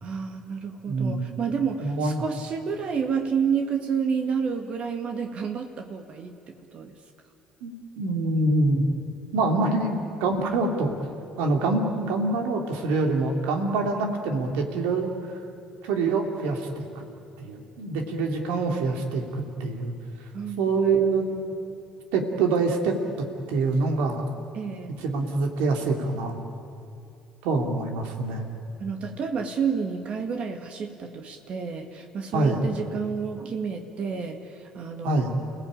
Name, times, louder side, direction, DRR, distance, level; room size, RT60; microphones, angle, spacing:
voice 1, 0.0-7.0 20.3-20.8 24.5-25.0 28.8-35.4, right 6 dB, 50° right, 4 dB, 2.1 m, -30 dB
voice 2, 0.9-1.2 1.8-2.2 7.6-8.8 9.3-11.0 11.4-15.1 15.8-17.0 17.4-19.9 20.6-21.3 22.1-23.0 23.5-24.2 25.0-26.3 27.4-28.5 32.3-32.7 35.0-35.4, right 3 dB, 75° right, 3 dB, 2.9 m, -25 dB
29.0 x 17.5 x 8.8 m, 2.5 s
hypercardioid pair, 65°, 2 cm